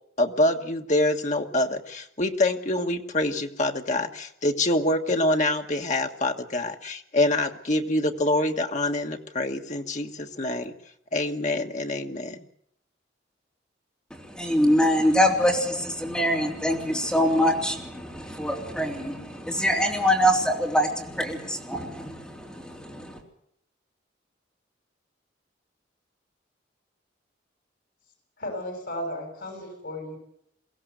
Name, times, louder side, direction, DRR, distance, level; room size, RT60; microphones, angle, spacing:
voice 1, 0.2-10.7 11.1-12.4, left 1 dB, 40° left, 4 dB, 1.5 m, -25 dB
voice 2, 14.1-23.2, equal, 5° left, -2 dB, 3.3 m, -24 dB
voice 3, 28.4-30.2, left 1 dB, 60° left, 3 dB, 6.6 m, -34 dB
23.0 x 16.5 x 8.1 m, 0.75 s
head